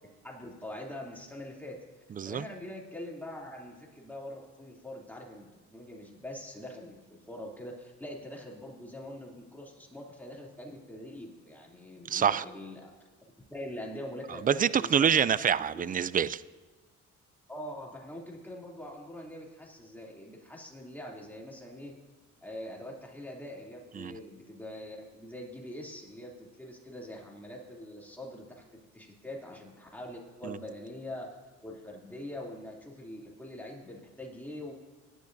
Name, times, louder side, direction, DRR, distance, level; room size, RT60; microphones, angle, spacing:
voice 1, 0.2-12.9 13.5-15.3 15.6-15.7 17.5-21.9 22.4-31.3 31.6-34.7, left 1 dB, 5° left, -2 dB, 2.8 m, -43 dB
voice 2, 12.1-12.4 14.4-16.4 24.0-24.1 30.4-30.6, right 8 dB, 30° right, 17 dB, 0.4 m, -26 dB
18.0 x 11.0 x 2.6 m, 1.3 s
cardioid pair, 90°, 30 cm